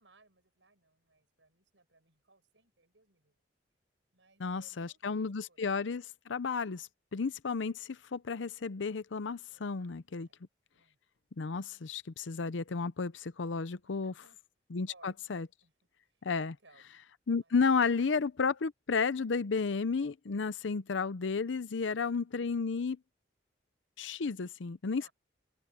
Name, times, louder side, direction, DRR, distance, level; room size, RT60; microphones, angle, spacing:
voice 1, 0.0-3.4 4.1-5.7 9.5-10.4 10.7-11.0 13.8-14.4 14.9-15.7 16.0-16.9 17.4-18.1 21.7-22.2 25.0-25.1, right 3 dB, 85° right, 7.3 m, -65 dB
voice 2, 4.4-10.3 11.4-14.1 14.7-15.5 16.2-16.6 17.3-23.0 24.0-25.1, left 5 dB, 85° left, 0.6 m, -32 dB
open air
head